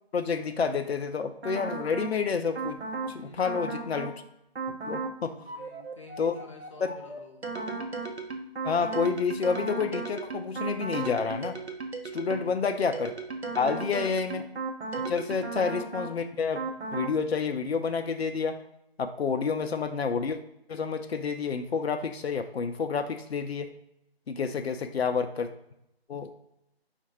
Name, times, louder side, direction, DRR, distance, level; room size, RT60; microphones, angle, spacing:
voice 1, 0.1-2.8 3.1-4.1 4.7-5.3 6.2-6.3 6.8-6.9 8.6-11.6 12.1-13.1 13.6-14.5 15.1-16.6 16.9-18.6 19.0-20.4 20.7-23.7 24.3-25.5 26.1-26.3, left 5 dB, 80° left, 7 dB, 0.5 m, -29 dB
sound 1, 1.4-2.1 2.5-3.1 3.4-4.1 4.5-5.1 5.5-12.5 12.9-16.1 16.5-17.1, right 3 dB, 85° right, 0.9 m, -35 dB
voice 2, 3.0-3.7 5.3-7.5 12.2-12.6 13.4-13.9, left 3 dB, 30° left, 1 dB, 0.6 m, -51 dB
5.2 x 2.5 x 4.0 m, 0.82 s
figure-of-eight pair, 160°, 31 cm